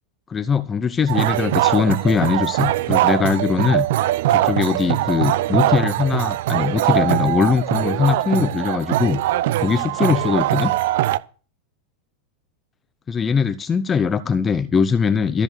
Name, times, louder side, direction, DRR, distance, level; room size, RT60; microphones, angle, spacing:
voice 1, 0.3-3.9 4.3-9.2 9.6-10.7 13.1-15.4, left 6 dB, 20° left, 12 dB, 0.7 m, -21 dB
sound 1, 1.1-11.2, right 15 dB, 55° right, 0.6 m, -21 dB
13.5 x 6.7 x 8.3 m, 0.39 s
figure-of-eight pair, 90°, 0 cm